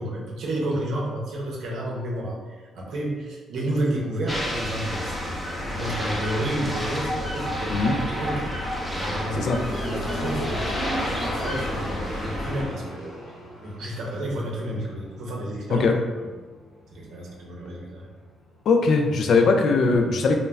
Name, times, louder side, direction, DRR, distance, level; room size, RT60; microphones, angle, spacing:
voice 1, 0.0-7.7 8.1-9.5 9.8-10.8 11.2-13.2 13.6-15.9 16.9-18.1, right 1 dB, 70° right, -2 dB, 0.6 m, -31 dB
sound 1, 4.2-18.6, equal, 80° left, 0.8 m, -38 dB
sound 2, 4.3-12.7, left 1 dB, 5° left, 0.6 m, -30 dB
voice 2, 18.7-20.4, left 4 dB, 65° left, 4 dB, 0.3 m, -20 dB
2.1 x 2.0 x 3.4 m, 1.3 s
cardioid pair, 90°, 0 cm